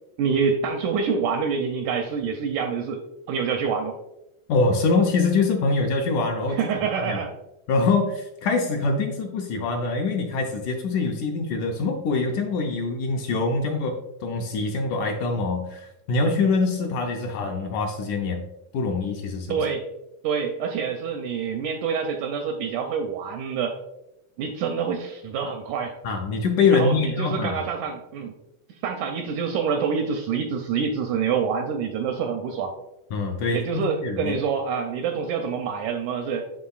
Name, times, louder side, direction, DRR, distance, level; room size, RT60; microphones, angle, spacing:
voice 1, 0.2-3.0 3.3-4.0 6.5-7.4 19.5-19.9 20.2-23.8 24.4-25.9 26.7-28.3 28.8-32.8 33.5-36.4, right 6 dB, 80° right, 4 dB, 1.8 m, -26 dB
voice 2, 4.5-6.6 6.9-7.2 7.7-18.4 18.7-19.6 26.0-27.6 33.1-34.4, left 3 dB, 75° left, 2 dB, 1.9 m, -24 dB
11.5 x 3.8 x 2.3 m, 0.89 s
omnidirectional pair, 4.0 m